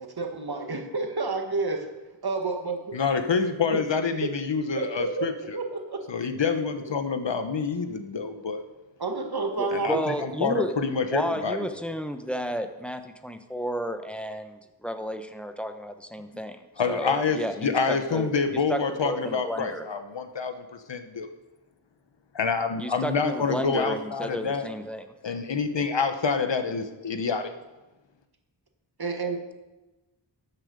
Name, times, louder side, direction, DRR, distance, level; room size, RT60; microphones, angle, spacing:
voice 1, 0.0-1.9 2.2-3.0 3.7-3.8 4.2-4.3 4.8-6.1 9.0-10.0 29.0-29.4, right 3 dB, 60° right, 4 dB, 1.6 m, -30 dB
voice 2, 2.9-5.6 6.1-8.6 9.7-11.7 16.8-21.3 22.3-24.7 25.2-27.5, left 5 dB, 80° left, 8 dB, 1.1 m, -27 dB
voice 3, 9.6-10.7 11.1-16.6 16.9-18.3 18.7-19.9 22.8-25.1, equal, 5° left, 7 dB, 0.9 m, -32 dB
13.0 x 8.8 x 5.2 m, 1.1 s
wide cardioid pair, 65°, 43 cm